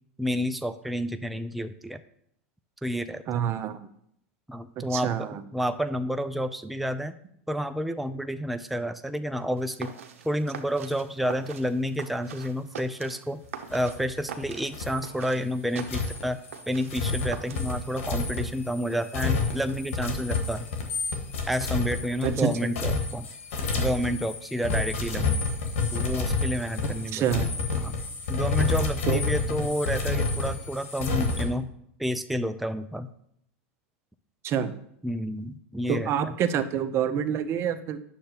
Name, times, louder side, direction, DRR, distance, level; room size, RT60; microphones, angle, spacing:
voice 1, 0.2-2.0 2.8-3.5 4.5-7.1 7.5-9.9 10.2-13.4 13.7-16.4 16.7-20.7 21.5-23.3 23.8-25.4 25.9-27.2 27.8-27.9 28.3-31.7 32.0-33.1 35.0-36.3, equal, ahead, 9 dB, 0.4 m, -30 dB
voice 2, 3.3-3.9 4.8-5.4 22.2-22.7 26.8-27.5 29.1-29.2 34.4-34.7 35.9-38.0, right 8 dB, 40° right, 10 dB, 0.7 m, -27 dB
sound 1, 9.6-18.0, right 7 dB, 80° right, 0.8 m, -43 dB
sound 2, 13.7-14.4 14.7-15.0 15.8-31.4, left 3 dB, 75° left, 1.5 m, -29 dB
9.8 x 6.6 x 2.9 m, 0.72 s
hypercardioid pair, 105°, 7 cm